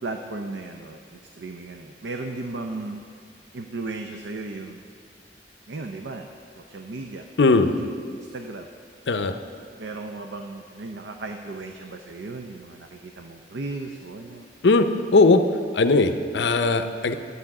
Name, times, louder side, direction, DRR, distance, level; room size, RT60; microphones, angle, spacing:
voice 1, 0.0-3.0 3.5-4.8 5.7-6.3 6.6-7.2 7.6-8.7 9.8-14.4, right 3 dB, 85° right, 4 dB, 0.6 m, -35 dB
voice 2, 7.4-7.7 9.1-9.3 14.6-15.4 15.7-17.1, left 3 dB, 80° left, 9 dB, 0.6 m, -19 dB
11.5 x 8.2 x 4.8 m, 2.2 s
head